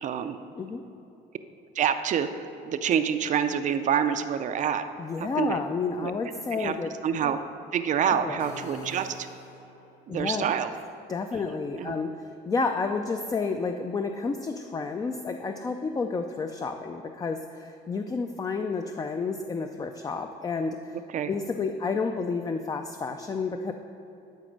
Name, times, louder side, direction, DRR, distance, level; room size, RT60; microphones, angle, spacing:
voice 1, 0.0-0.4 1.8-4.8 5.2-5.6 6.0-6.1 6.5-6.7 7.0-7.4 7.7-9.3 10.1-10.7 11.7-11.9 21.1-21.3, right 8 dB, 45° right, 9 dB, 0.4 m, -27 dB
voice 2, 5.0-6.9 8.1-8.5 10.1-10.5 11.1-21.0 21.3-23.7, left 4 dB, 20° left, 6 dB, 0.3 m, -30 dB
sound 1, 8.4-10.0, left 1 dB, 85° left, 0.7 m, -43 dB
11.0 x 4.2 x 5.1 m, 3.0 s
cardioid pair, 110°, 17 cm